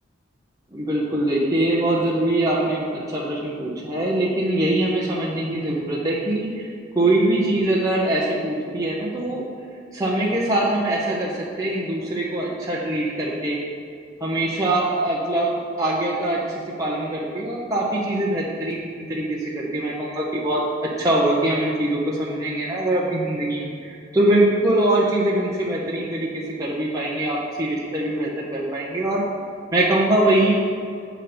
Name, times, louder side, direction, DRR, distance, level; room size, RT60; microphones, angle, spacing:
voice 1, 0.7-6.7 6.9-9.4 9.9-13.6 14.2-29.2 29.7-30.5, right 1 dB, 20° right, -6 dB, 0.8 m, -23 dB
8.0 x 4.0 x 5.9 m, 2.4 s
head